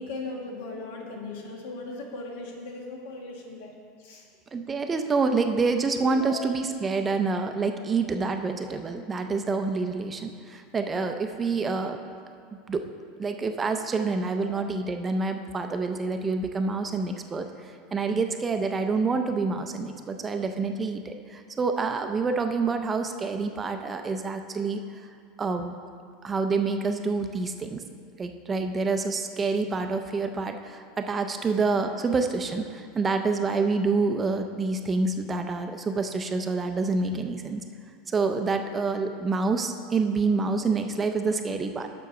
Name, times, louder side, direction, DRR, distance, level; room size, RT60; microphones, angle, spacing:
voice 1, 0.0-3.7 4.0-4.3 6.1-6.5 14.3-14.7 31.4-31.5, left 3 dB, 80° left, 0 dB, 1.4 m, -38 dB
voice 2, 4.5-12.0 12.7-12.9 13.2-25.0 25.4-25.8 26.2-27.8 28.2-37.6 38.1-41.9, right 4 dB, 15° right, 6 dB, 0.4 m, -27 dB
7.2 x 5.6 x 5.9 m, 2.2 s
supercardioid pair, 160°, 0 cm